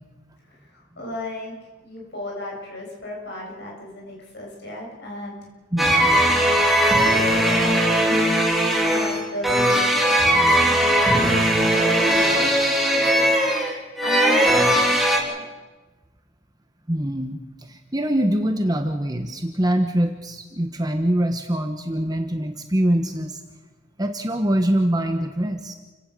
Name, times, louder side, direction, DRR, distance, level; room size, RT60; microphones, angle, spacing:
voice 1, 0.5-1.5 1.8-5.5 5.8-6.6 7.0-13.3 14.0-15.4, left 1 dB, 50° left, -1 dB, 7.3 m, -35 dB
voice 2, 5.7-6.1 16.9-17.4 17.7-23.4 24.0-25.7, right 1 dB, 15° right, 6 dB, 1.2 m, -23 dB
sound 1, 5.8-15.2, equal, ahead, 3.1 m, -19 dB
29.0 x 16.5 x 6.8 m, 1.2 s
head